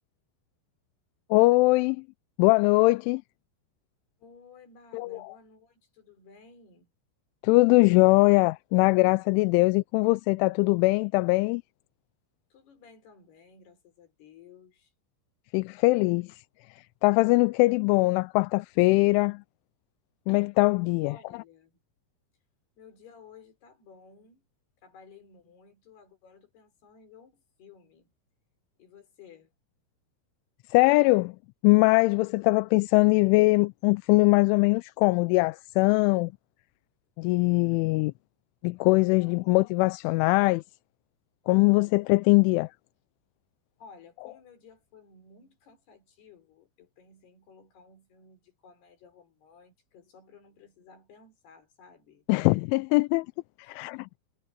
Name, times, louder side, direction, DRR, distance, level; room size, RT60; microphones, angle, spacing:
voice 1, 1.3-2.0 2.4-3.2 4.9-5.2 7.4-11.6 15.5-16.4 17.0-19.4 20.3-21.2 30.7-31.3 31.6-36.3 37.2-38.1 38.6-40.6 41.5-42.7 52.3-53.3 53.7-54.1, left 24 dB, 85° left, 2.9 m, -22 dB
voice 2, 4.2-6.9 12.5-14.9 21.0-21.8 22.8-24.4 24.8-28.1 28.8-29.5 43.8-52.3 53.6-53.8, left 5 dB, 55° left, 6.5 m, -55 dB
omnidirectional pair, 5.7 m